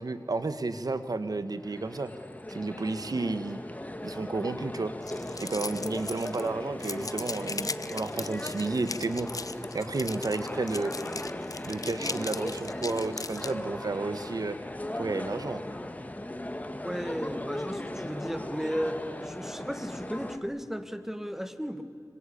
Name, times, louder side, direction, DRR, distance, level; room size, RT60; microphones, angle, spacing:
voice 1, 0.0-2.1 2.5-3.6 4.0-4.9 5.4-9.3 9.7-10.9 11.6-14.6 15.0-15.6, right 3 dB, 70° right, 11 dB, 1.5 m, -32 dB
Crowd Ambience, 1.5-20.4, left 1 dB, 20° left, 2.0 m, -38 dB
sound 1, 5.0-6.5 6.8-13.5, left 3 dB, 60° left, 0.9 m, -38 dB
voice 2, 16.7-21.8, equal, 5° right, 9 dB, 2.0 m, -35 dB
26.0 x 25.5 x 8.6 m, 2.5 s
wide cardioid pair, 75°, 7 cm